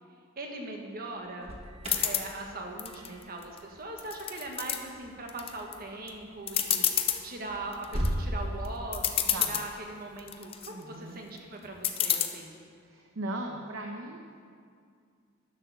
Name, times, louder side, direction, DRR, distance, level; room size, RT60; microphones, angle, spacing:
voice 1, 0.4-1.5 2.0-12.6, right 2 dB, 45° right, 2 dB, 1.3 m, -40 dB
Alarm, 1.1-8.2, equal, 30° right, 1.2 m, -40 dB
sound 1, 1.8-2.3 2.8-3.6 4.0-4.8 5.3-5.7 6.1-6.2 6.5-7.2 7.7-8.1 8.7-8.8 8.9-9.7 10.2-10.7 11.8-12.3, left 9 dB, 25° left, 0.5 m, -28 dB
voice 2, 10.7-11.2 12.8-14.2, right 1 dB, 70° right, 2 dB, 0.8 m, -38 dB
10.5 x 6.8 x 6.6 m, 2.2 s
head